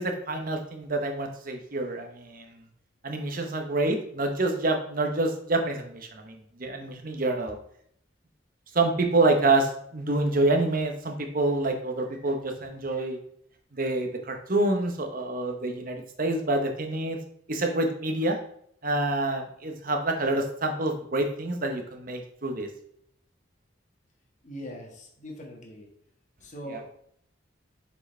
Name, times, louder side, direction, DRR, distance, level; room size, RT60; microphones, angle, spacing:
voice 1, 0.0-2.5 3.0-7.6 8.7-13.2 13.7-17.2 17.5-18.4 18.8-22.7 26.7-26.8, right 2 dB, 50° right, 4 dB, 1.1 m, -27 dB
voice 2, 24.4-25.9 26.4-26.9, equal, 40° left, 0 dB, 1.5 m, -41 dB
6.9 x 5.0 x 3.3 m, 0.68 s
head